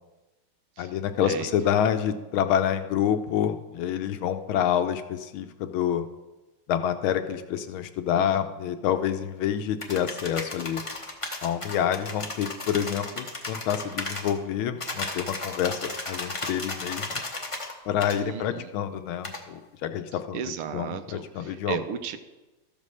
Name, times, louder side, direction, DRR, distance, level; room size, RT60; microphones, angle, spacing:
voice 1, 0.8-6.1 6.7-10.8 11.4-17.2 17.9-20.4 20.7-21.8, left 9 dB, 75° left, 9 dB, 1.4 m, -27 dB
sound 1, 9.8-14.3 14.8-17.7 18.0-18.2 19.2-19.4, left 2 dB, 40° left, 0.4 m, -35 dB
voice 2, 18.2-18.7 20.3-22.2, right 9 dB, 80° right, 9 dB, 1.6 m, -34 dB
13.5 x 5.3 x 6.3 m, 1.1 s
omnidirectional pair, 2.4 m